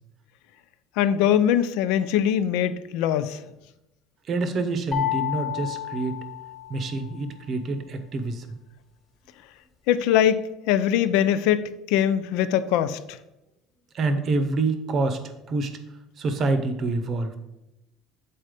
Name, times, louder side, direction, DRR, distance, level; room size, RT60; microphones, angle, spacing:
voice 1, 1.0-3.4 9.9-13.2, left 10 dB, 75° left, 0.5 m, -22 dB
voice 2, 4.3-6.2 6.7-8.6 13.9-15.7 16.2-17.4, right 3 dB, 35° right, 0.7 m, -27 dB
sound 1, 4.9-7.1, left 13 dB, 15° left, 1.4 m, -30 dB
7.7 x 4.2 x 5.1 m
cardioid pair, 165°, 0 cm